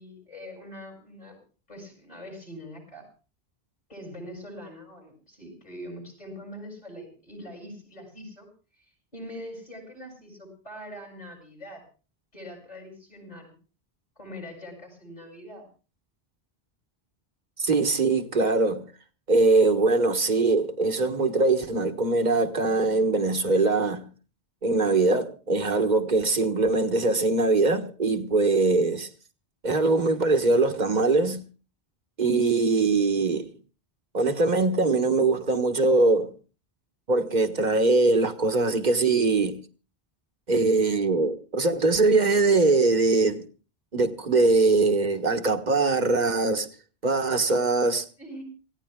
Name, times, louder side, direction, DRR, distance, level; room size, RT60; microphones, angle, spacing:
voice 1, 0.0-1.4 1.7-3.1 3.9-8.5 8.7-11.9 12.3-13.5 14.2-15.7 48.2-48.4, equal, 40° left, 7.4 m, -43 dB
voice 2, 17.6-18.8 19.3-24.1 24.6-29.1 29.6-31.4 32.2-33.5 34.1-36.3 37.1-39.6 40.5-43.5 43.9-46.7 47.0-48.0, right 3 dB, 45° right, 1.5 m, -22 dB
27.0 x 16.5 x 2.3 m
omnidirectional pair, 1.1 m